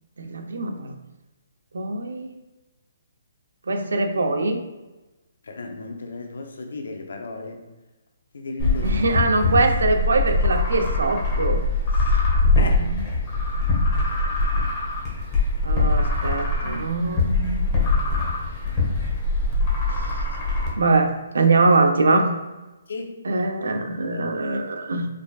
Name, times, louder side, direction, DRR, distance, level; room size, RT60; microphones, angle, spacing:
voice 1, 0.2-1.0 1.7-2.3 3.7-4.6 8.8-11.6 12.7-13.0 15.6-17.7 19.9-20.1 20.8-22.3 23.2-25.1, right 3 dB, 85° right, 5 dB, 0.7 m, -22 dB
voice 2, 5.4-7.6 8.3-9.0 12.6-12.9 22.9-23.2, left 3 dB, 75° left, 4 dB, 0.7 m, -34 dB
sound 1, 8.6-20.7, left 2 dB, 20° left, 1.0 m, -22 dB
4.9 x 3.4 x 2.4 m, 1.1 s
hypercardioid pair, 175°, 0 cm